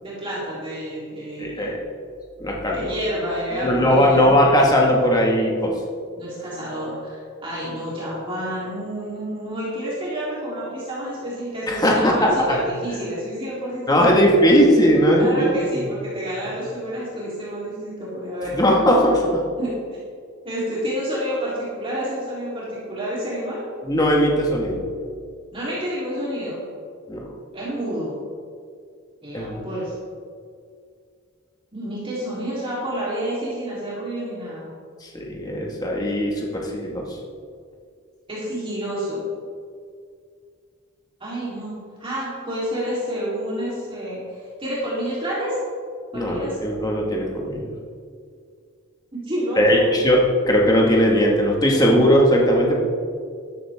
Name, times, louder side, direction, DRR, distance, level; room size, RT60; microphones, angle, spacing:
voice 1, 0.0-1.7 2.7-4.2 6.2-14.4 15.2-18.5 19.6-19.7 20.4-23.6 25.5-26.6 27.5-28.1 29.2-29.9 31.7-34.7 38.3-39.3 41.2-45.6 46.1-46.6 49.2-50.0, equal, 25° right, -9 dB, 3.7 m, -29 dB
voice 2, 1.4-1.8 2.4-2.9 3.6-5.7 11.7-12.6 13.9-15.6 18.5-19.4 23.8-24.8 27.1-27.2 29.3-29.6 35.0-37.0 46.1-47.7 49.6-52.8, equal, 20° left, -1 dB, 2.0 m, -18 dB
13.5 x 12.0 x 3.7 m, 2.2 s
head